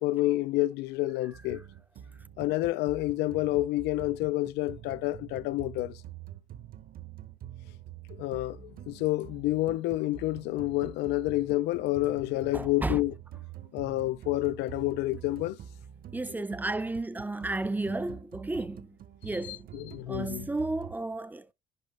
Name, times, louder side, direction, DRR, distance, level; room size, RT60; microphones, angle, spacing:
voice 1, 0.0-1.6 2.4-6.0 8.2-13.1 13.7-15.6 19.5-20.4, left 17 dB, 90° left, 0.5 m, -29 dB
sound 1, 1.3-21.0, right 10 dB, 60° right, 1.0 m, -46 dB
voice 2, 12.5-13.0 16.1-19.0 19.2-19.7 20.1-21.5, right 2 dB, 10° right, 0.5 m, -33 dB
10.5 x 5.1 x 3.3 m
cardioid pair, 110°, 17 cm